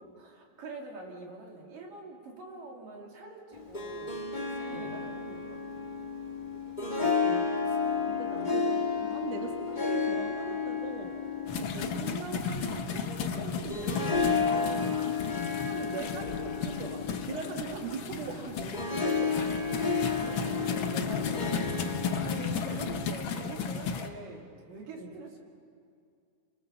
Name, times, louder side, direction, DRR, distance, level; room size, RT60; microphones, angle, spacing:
voice 1, 0.2-4.2 4.5-5.8 9.0-9.2 14.5-15.0 15.7-16.0 18.2-18.4 20.0-25.4, right 3 dB, 75° right, 0 dB, 4.5 m, -45 dB
Harp, 3.5-23.4, left 5 dB, 20° left, 1.2 m, -32 dB
voice 2, 7.0-11.2 11.5-14.9 15.5-19.4 22.5-22.8 25.0-25.2, right 4 dB, 55° right, 2 dB, 2.8 m, -41 dB
sound 1, 11.5-24.1, left 6 dB, 70° left, 1.2 m, -35 dB
28.5 x 23.5 x 7.0 m, 2.3 s
omnidirectional pair, 3.9 m